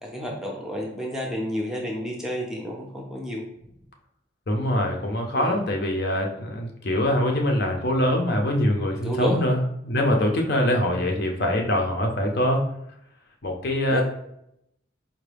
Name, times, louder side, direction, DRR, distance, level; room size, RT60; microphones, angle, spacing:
voice 1, 0.0-3.4 5.3-5.6 9.0-9.4 13.9-14.0, equal, 5° right, -1 dB, 0.5 m, -30 dB
voice 2, 4.5-12.6 13.4-14.0, left 1 dB, 55° left, 2 dB, 0.6 m, -23 dB
4.5 x 2.2 x 3.3 m, 0.77 s
head